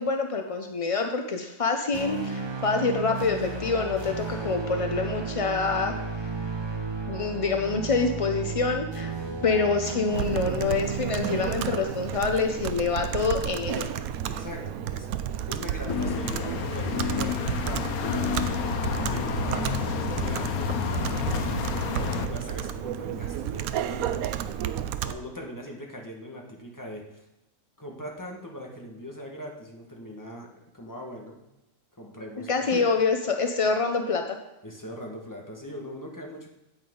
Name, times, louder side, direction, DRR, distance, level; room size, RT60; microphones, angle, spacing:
voice 1, 0.0-5.9 7.1-9.1 9.4-13.9 32.5-34.4, left 4 dB, 60° left, 5 dB, 0.3 m, -26 dB
sound 1, 1.9-12.1, right 4 dB, 20° right, 0.8 m, -34 dB
voice 2, 9.0-9.5 14.3-15.1 15.5-21.6 21.9-24.3 25.0-27.2 27.8-30.5 30.7-31.4 31.9-32.8 34.6-36.5, equal, 15° left, 0 dB, 1.4 m, -41 dB
Computer keyboard, 10.1-25.1, right 10 dB, 80° right, 1.0 m, -32 dB
sound 2, 15.9-22.3, left 7 dB, 85° left, 1.2 m, -29 dB
8.9 x 8.6 x 3.8 m, 0.94 s
omnidirectional pair, 1.5 m